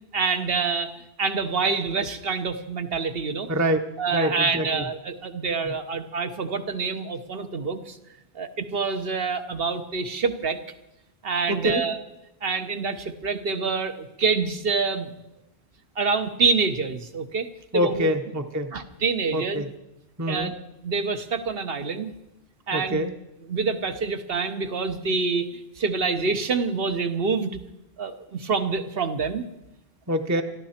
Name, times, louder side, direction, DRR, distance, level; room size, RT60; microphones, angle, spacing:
voice 1, 0.1-0.9 1.2-3.5 4.0-8.0 8.3-10.6 11.2-12.0 12.4-15.1 16.0-17.5 17.7-18.1 18.7-19.6 20.3-20.5 20.8-22.1 22.7-23.0 23.5-25.5 25.8-27.6 28.0-29.5, right 4 dB, 65° right, 8 dB, 1.2 m, -26 dB
voice 2, 3.5-3.8 4.1-4.8 5.6-5.7 11.5-11.9 17.7-18.7 19.3-19.7 20.2-20.5 22.7-23.1 30.1-30.4, equal, 20° right, 6 dB, 0.8 m, -25 dB
21.5 x 13.5 x 4.4 m, 0.91 s
omnidirectional pair, 1.0 m